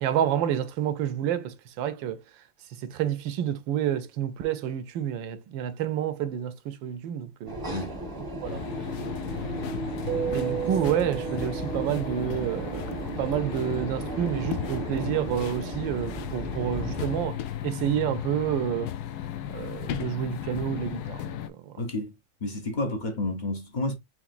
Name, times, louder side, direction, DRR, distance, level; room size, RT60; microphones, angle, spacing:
voice 1, 0.0-2.2 2.8-7.6 8.4-8.6 9.3-10.0 10.3-12.9 13.2-18.9 19.5-21.8, right 10 dB, 80° right, 1.4 m, -29 dB
sound 1, 7.5-17.3, right 2 dB, 15° right, 0.7 m, -35 dB
voice 2, 7.7-8.0 10.5-10.7 21.8-22.1 22.4-23.9, left 2 dB, 45° left, 0.5 m, -30 dB
sound 2, 8.4-21.5, left 11 dB, 70° left, 1.0 m, -36 dB
Keyboard (musical), 10.1-12.6, right 9 dB, 60° right, 1.0 m, -33 dB
5.9 x 3.2 x 2.5 m
omnidirectional pair, 2.1 m